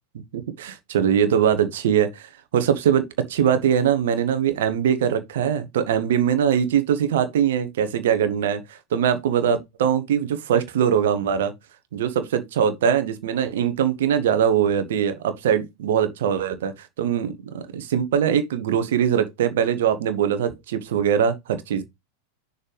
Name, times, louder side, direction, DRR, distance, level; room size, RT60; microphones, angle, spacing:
voice 1, 0.3-11.5 11.9-21.8, right 8 dB, 55° right, 1.1 m, -22 dB
6.6 x 5.5 x 3.3 m
figure-of-eight pair, 90°, 0 cm